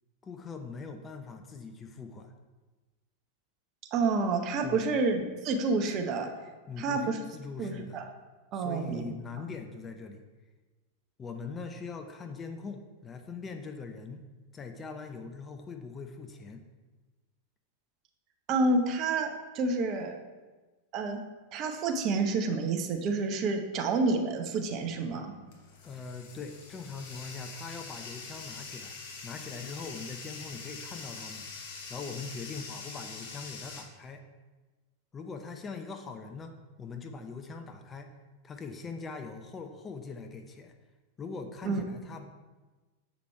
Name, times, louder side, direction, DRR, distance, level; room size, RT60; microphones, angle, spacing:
voice 1, 0.2-2.3 4.6-4.9 6.7-8.0 8.5-10.2 11.2-14.2 14.5-16.6 25.8-29.0 29.2-34.2 35.1-38.1 38.4-40.7 41.2-42.3, left 4 dB, 20° left, 5 dB, 0.6 m, -42 dB
voice 2, 3.9-6.3 6.8-7.2 7.6-8.0 8.5-9.1 18.5-20.2 20.9-21.2 21.5-25.3 41.6-41.8, right 3 dB, 35° right, 4 dB, 0.9 m, -29 dB
Bathtub (filling or washing), 24.6-33.8, left 4 dB, 50° left, 1.3 m, -44 dB
6.9 x 5.0 x 4.5 m, 1.2 s
figure-of-eight pair, 90°, 0 cm